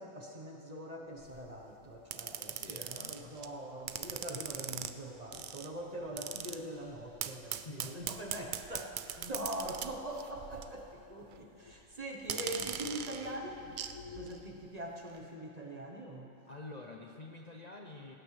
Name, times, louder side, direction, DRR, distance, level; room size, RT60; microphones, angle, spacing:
voice 1, 0.0-13.6 14.2-16.3, right 1 dB, 30° right, 0 dB, 1.1 m, -43 dB
sound 1, 1.0-3.4 3.9-4.1 4.6-4.7 5.0-6.7 7.3-7.4 8.3-8.4 10.4-14.6, left 5 dB, 90° left, 1.2 m, -56 dB
sound 2, 1.2-1.5 2.1-3.5 3.9-4.9 5.3-5.7 6.2-6.6 7.2-10.9 11.1-11.4 12.2-14.0 14.3-14.4, right 9 dB, 75° right, 0.4 m, -41 dB
voice 2, 2.4-3.4 7.7-8.0 16.5-18.2, left 2 dB, 40° left, 1 dB, 0.7 m, -48 dB
18.5 x 16.5 x 3.3 m, 2.9 s
omnidirectional pair, 1.4 m